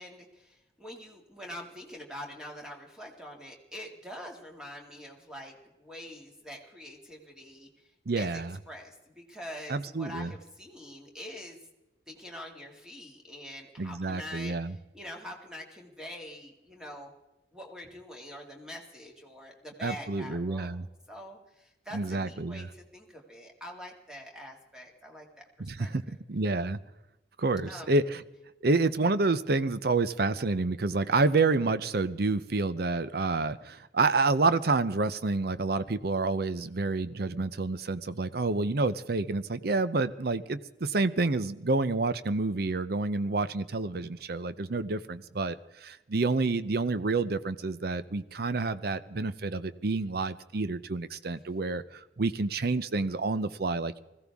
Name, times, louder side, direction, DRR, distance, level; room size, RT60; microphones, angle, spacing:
voice 1, 0.0-7.7 8.2-11.6 12.1-17.1 17.5-20.8 21.1-25.3 25.6-25.9 27.7-27.9, equal, 5° right, 0 dB, 2.2 m, -45 dB
voice 2, 8.1-8.6 9.7-10.3 13.8-14.7 19.8-20.9 21.9-22.7 25.6-26.0 26.3-26.8 27.4-28.2 28.6-54.0, right 3 dB, 60° right, 14 dB, 0.7 m, -28 dB
21.0 x 15.0 x 3.6 m, 0.97 s
head